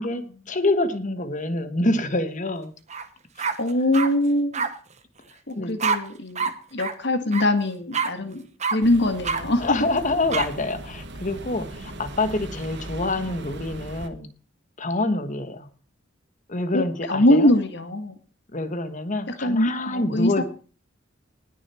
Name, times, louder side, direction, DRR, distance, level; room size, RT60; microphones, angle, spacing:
voice 1, 0.0-2.7 3.4-3.5 5.5-5.7 8.2-8.3 9.6-14.3 14.8-15.7 16.5-17.5 18.5-20.4, left 2 dB, 40° left, 10 dB, 1.4 m, -26 dB
sound 1, 2.9-3.1 3.4-4.1 4.5-4.7 5.8-6.0 6.4-6.5 6.8-6.9 7.3-7.5 7.9-8.1 8.6-8.8 9.2-9.4 10.3-10.5, right 5 dB, 35° right, 1.2 m, -25 dB
voice 2, 3.6-4.6 5.5-8.4 8.7-9.6 16.7-18.1 19.4-20.4, left 1 dB, 60° left, 8 dB, 1.9 m, -22 dB
sound 2, 8.8-14.1, right 2 dB, 60° right, 1.4 m, -38 dB
19.0 x 6.9 x 4.4 m, 0.39 s
head